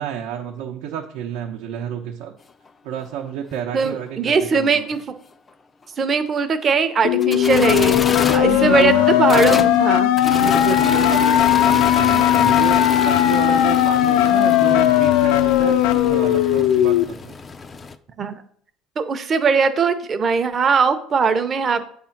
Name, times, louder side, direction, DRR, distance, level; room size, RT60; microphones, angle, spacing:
voice 1, 0.0-2.3 2.8-4.9 8.4-9.2 10.3-17.3, right 9 dB, 80° right, 1 dB, 0.8 m, -30 dB
sound 1, 2.7-2.8 3.0-3.1 5.5-5.6 6.9-18.0, left 4 dB, 20° left, 0.3 m, -29 dB
voice 2, 3.7-5.0 6.0-8.9 9.2-10.1 18.2-18.4 19.0-21.8, right 5 dB, 25° right, 10 dB, 0.6 m, -20 dB
sound 2, 7.0-17.0, left 12 dB, 85° left, 0.5 m, -17 dB
8.6 x 3.6 x 5.8 m, 0.62 s
cardioid pair, 175°, 0 cm